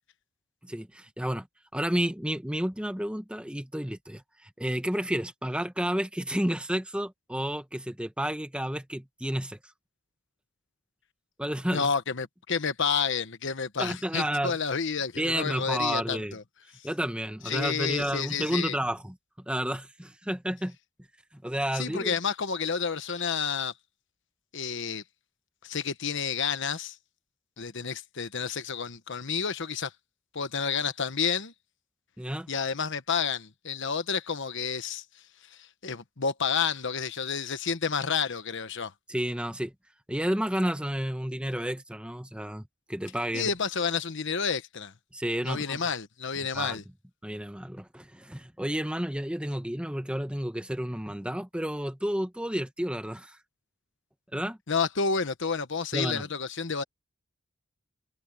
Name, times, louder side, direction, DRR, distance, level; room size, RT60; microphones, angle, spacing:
voice 1, 0.6-1.5 1.7-9.6 11.4-11.9 13.8-14.6 15.2-16.4 16.8-19.2 19.5-20.7 21.3-22.1 32.2-32.5 39.1-39.7 40.1-42.6 42.9-43.5 45.1-45.8 46.4-46.8 47.2-53.4 54.3-54.6 55.9-56.3, equal, 5° right, 1.2 m, -31 dB
voice 2, 11.7-16.4 17.4-18.8 21.7-23.7 24.5-25.0 25.6-27.0 27.6-29.9 30.3-31.5 32.5-35.0 35.5-38.9 43.3-44.9 45.4-46.8 54.7-56.8, left 6 dB, 60° left, 1.1 m, -30 dB
head